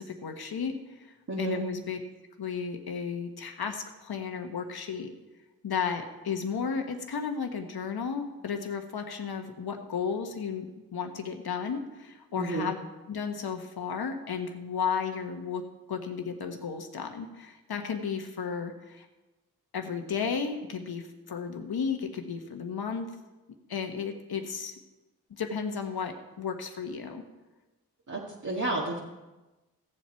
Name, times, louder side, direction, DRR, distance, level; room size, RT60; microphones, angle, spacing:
voice 1, 0.0-2.0 2.4-5.1 5.6-10.7 10.9-12.8 13.1-15.6 15.9-19.1 19.7-23.1 23.7-24.7 25.3-27.2, left 6 dB, 75° left, 5 dB, 1.4 m, -33 dB
voice 2, 1.3-1.6 12.4-12.7 28.1-29.0, right 2 dB, 50° right, -5 dB, 2.0 m, -31 dB
15.5 x 7.7 x 4.6 m, 1.1 s
cardioid pair, 45°, 38 cm